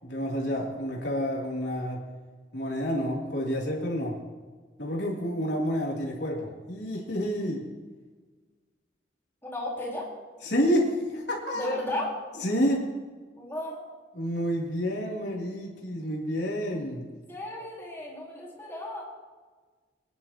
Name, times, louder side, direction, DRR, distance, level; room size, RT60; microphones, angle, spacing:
voice 1, 0.0-2.0 2.5-4.2 4.8-7.6 10.4-11.8 12.4-12.9 14.1-17.1, equal, 85° left, -3 dB, 3.1 m, -29 dB
voice 2, 9.4-10.1 11.5-12.1 13.4-13.8 17.3-19.0, left 1 dB, 15° left, -5 dB, 4.2 m, -34 dB
25.0 x 10.5 x 3.0 m, 1.4 s
head